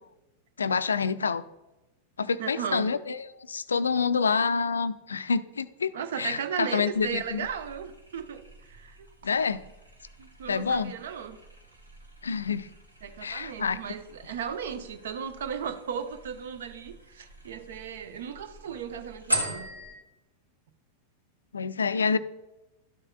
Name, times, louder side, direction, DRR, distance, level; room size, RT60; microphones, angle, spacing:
voice 1, 0.6-1.4 2.2-7.4 9.2-9.6 10.5-10.9 12.2-12.7 13.2-13.8 21.5-22.2, left 5 dB, 70° left, 15 dB, 0.3 m, -27 dB
voice 2, 2.4-2.9 5.9-9.3 10.2-11.4 13.0-19.7, right 7 dB, 60° right, 10 dB, 0.7 m, -36 dB
sound 1, 6.9-20.0, right 1 dB, 80° right, 1.2 m, -41 dB
12.0 x 6.5 x 2.2 m, 1.0 s
figure-of-eight pair, 90°, 0 cm